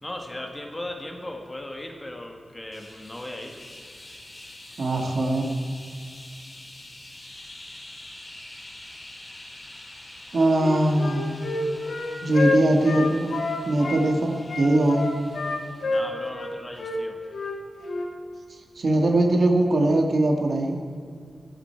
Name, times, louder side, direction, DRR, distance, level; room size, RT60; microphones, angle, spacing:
voice 1, 0.0-3.6 15.8-17.2, left 1 dB, 15° left, 2 dB, 1.8 m, -37 dB
sound 1, 2.7-16.1, left 1 dB, 35° left, 4.5 m, -45 dB
voice 2, 4.8-5.5 10.3-11.3 12.2-13.4 13.7-15.2 18.8-20.8, right 1 dB, 55° right, 2 dB, 2.0 m, -21 dB
Wind instrument woodwind instrument, 10.6-14.0 14.5-16.5 16.8-17.0 17.3-17.5 17.8-18.1, left 3 dB, 80° left, 2.4 m, -28 dB
18.5 x 15.5 x 4.7 m, 2.3 s
wide cardioid pair, 170°, 0 cm